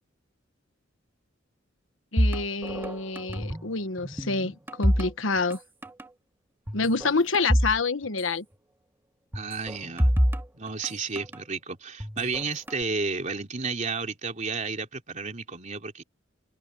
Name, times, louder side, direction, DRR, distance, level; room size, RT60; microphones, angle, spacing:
voice 1, 2.1-5.6 6.7-8.4, left 3 dB, 80° left, 1.3 m, -27 dB
sound 1, 2.2-3.7 4.0-5.6 5.8-6.1 6.7-7.8 8.0-8.1 9.3-11.4 12.0-12.8, equal, 10° right, 2.1 m, -27 dB
voice 2, 9.3-10.1 10.5-16.0, right 4 dB, 40° right, 3.3 m, -32 dB
head